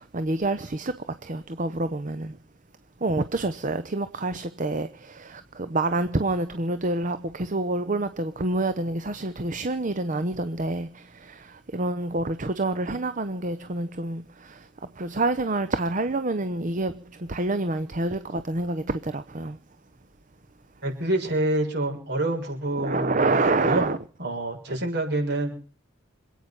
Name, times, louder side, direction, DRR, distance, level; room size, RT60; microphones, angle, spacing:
voice 1, 0.0-2.4 3.0-14.7 15.0-19.6 22.8-24.0, right 2 dB, 40° right, 0.8 m, -27 dB
voice 2, 20.8-23.9 24.2-25.5, right 1 dB, 55° right, 6.6 m, -27 dB
27.0 x 9.3 x 5.5 m
head